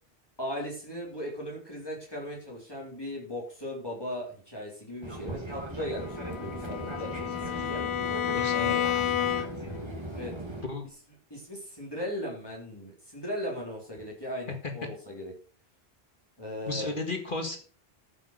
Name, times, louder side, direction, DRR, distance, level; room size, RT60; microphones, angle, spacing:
voice 1, 0.4-7.8 8.5-8.9 10.1-10.3 11.3-15.3 16.4-16.9, equal, 20° left, -3 dB, 3.7 m, -38 dB
Fixed-wing aircraft airplane, 5.0-10.6, right 2 dB, 25° right, 2.2 m, -38 dB
Bowed string instrument, 6.0-9.8, left 11 dB, 90° left, 1.0 m, -30 dB
voice 2, 8.3-8.8 10.7-10.9 16.7-17.6, left 3 dB, 55° left, 4 dB, 2.0 m, -33 dB
13.5 x 6.3 x 6.5 m, 0.42 s
omnidirectional pair, 1.1 m